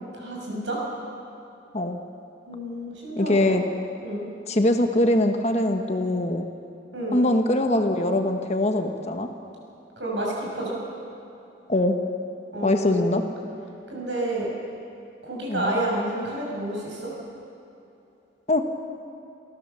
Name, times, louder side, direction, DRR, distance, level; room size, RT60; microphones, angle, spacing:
voice 1, 0.1-0.8 2.5-3.6 4.0-4.3 6.9-7.2 10.0-10.8 12.5-13.3 13.9-14.5 15.2-17.1, right 1 dB, 70° right, -3 dB, 6.4 m, -30 dB
voice 2, 3.2-3.6 4.5-6.5 7.1-9.3 11.7-12.0 12.6-13.2 15.5-15.8 18.5-18.6, left 1 dB, 35° left, 5 dB, 1.1 m, -22 dB
28.5 x 14.0 x 6.8 m, 2.8 s
head